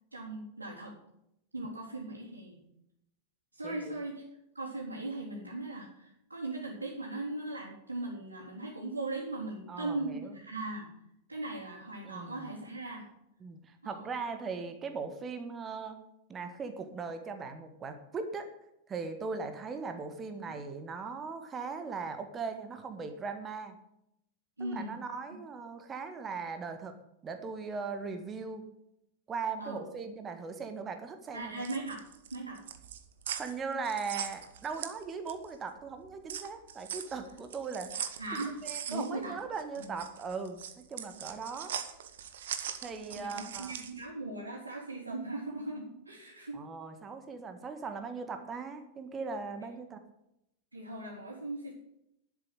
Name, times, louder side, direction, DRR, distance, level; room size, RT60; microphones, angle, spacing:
voice 1, 0.1-1.0 1.5-2.6 3.5-4.2 4.5-10.9 11.3-13.1 13.8-14.0 20.4-20.5 24.6-25.0 29.6-29.8 31.3-32.0 32.3-32.6 38.2-39.4 39.8-39.9 43.2-46.6 50.7-51.7, right 2 dB, 80° right, -8 dB, 3.9 m, -39 dB
voice 2, 3.6-4.0 9.7-10.3 12.0-12.5 13.4-16.0 16.3-18.5 18.9-23.7 24.6-26.9 27.2-28.6 29.3-31.6 33.4-38.2 38.6-40.6 40.9-41.7 42.8-43.7 46.5-50.0, right 5 dB, 20° right, 7 dB, 1.7 m, -39 dB
sound 1, 31.4-35.5 35.9-44.0, right 9 dB, 60° right, 1.2 m, -41 dB
11.5 x 7.7 x 8.0 m, 0.81 s
figure-of-eight pair, 90°, 0 cm